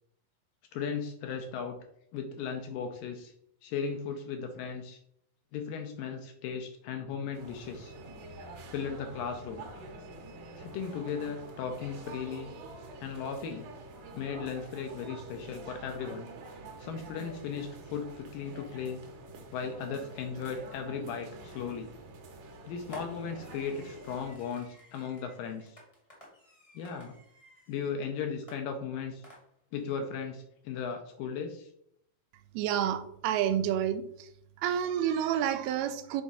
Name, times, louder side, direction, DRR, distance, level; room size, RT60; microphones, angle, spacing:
voice 1, 0.7-1.8 2.1-3.3 3.6-5.0 5.5-7.9 8.7-9.7 10.6-12.5 13.0-13.7 14.1-16.3 16.8-19.0 19.5-21.9 22.7-25.8 26.8-27.2 27.7-29.2 29.7-31.7, left 6 dB, 80° left, 4 dB, 2.1 m, -36 dB
sound 1, 7.3-24.3, right 2 dB, 70° right, 2.2 m, -47 dB
Fireworks, 21.4-21.8 22.9-28.0 28.5-29.8, equal, 25° left, 0.7 m, -53 dB
voice 2, 32.5-34.3 34.6-36.2, right 10 dB, 85° right, 10 dB, 2.5 m, -29 dB
6.2 x 3.5 x 5.4 m, 0.72 s
omnidirectional pair, 4.4 m